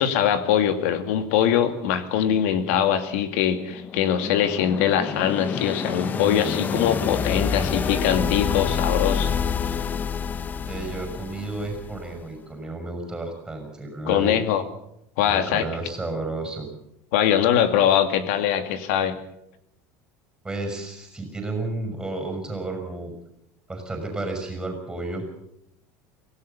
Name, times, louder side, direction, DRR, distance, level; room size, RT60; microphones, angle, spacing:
voice 1, 0.0-9.3 14.1-14.6 15.2-15.6 17.1-19.2, left 9 dB, 80° left, 9 dB, 2.4 m, -22 dB
sound 1, 3.3-12.2, left 6 dB, 25° left, 0.7 m, -28 dB
voice 2, 10.6-14.4 15.2-16.7 20.4-23.1 23.7-25.2, right 2 dB, 10° right, 5 dB, 5.8 m, -32 dB
24.0 x 17.0 x 7.0 m, 0.78 s
cardioid pair, 150°, 7 cm